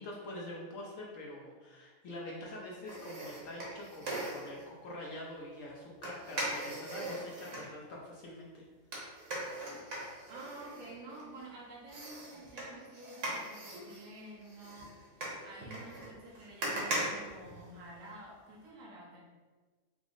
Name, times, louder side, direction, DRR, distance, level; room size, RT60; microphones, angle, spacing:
voice 1, 0.0-8.6 9.0-9.2, left 1 dB, 60° left, -3 dB, 0.9 m, -45 dB
sound 1, 2.9-4.7 6.0-7.7 8.9-11.4 11.9-18.1 18.5-18.6, right 1 dB, 55° right, 1.1 m, -40 dB
voice 2, 10.3-19.2, right 2 dB, 90° right, -3 dB, 1.5 m, -50 dB
4.9 x 2.0 x 3.7 m, 1.4 s
omnidirectional pair, 1.7 m